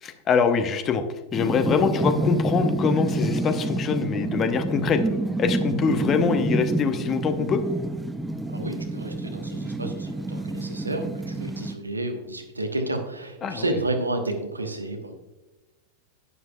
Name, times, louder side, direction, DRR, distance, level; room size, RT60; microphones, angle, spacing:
voice 1, 0.0-1.0 1.3-5.0 5.4-7.6 13.4-13.6, left 6 dB, 30° left, 9 dB, 0.8 m, -24 dB
sound 1, 1.3-11.7, right 2 dB, 5° right, 0.5 m, -28 dB
voice 2, 8.5-15.1, right 2 dB, 80° right, 4 dB, 1.2 m, -31 dB
11.0 x 9.6 x 2.3 m, 1.1 s
figure-of-eight pair, 90°, 0 cm